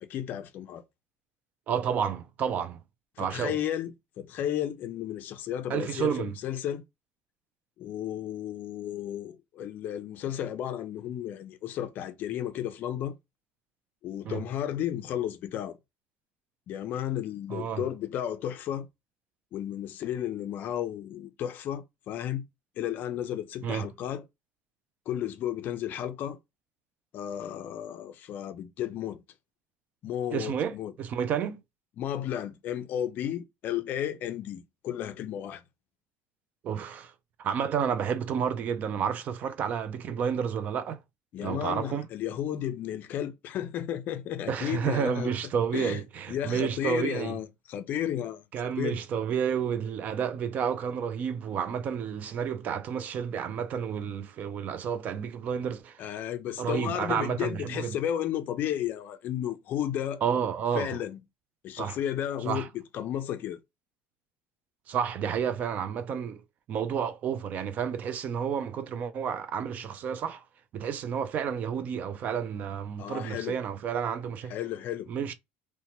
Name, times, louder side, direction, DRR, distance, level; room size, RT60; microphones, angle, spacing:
voice 1, 0.1-0.8 3.2-6.8 7.8-13.2 14.0-15.8 16.7-18.9 19.5-22.5 22.8-24.2 25.1-26.4 27.1-29.2 30.0-30.9 32.0-35.6 41.3-45.3 45.7-46.0 46.3-48.4 48.8-49.0 56.0-60.2 60.7-61.2 61.6-63.6 73.0-73.6 74.5-75.1, left 10 dB, 40° left, 0.4 m, -33 dB
voice 2, 1.7-2.8 3.2-3.6 5.7-6.3 14.3-14.4 17.5-17.8 23.6-23.9 30.3-31.6 36.6-37.1 37.4-41.0 41.4-42.1 44.5-47.4 48.5-56.0 56.6-58.0 60.2-61.0 61.8-62.0 62.4-62.7 64.9-66.4 66.7-70.4 70.7-74.5 75.1-75.3, right 7 dB, 35° right, 0.3 m, -30 dB
2.8 x 2.1 x 2.9 m
cardioid pair, 170°, 5 cm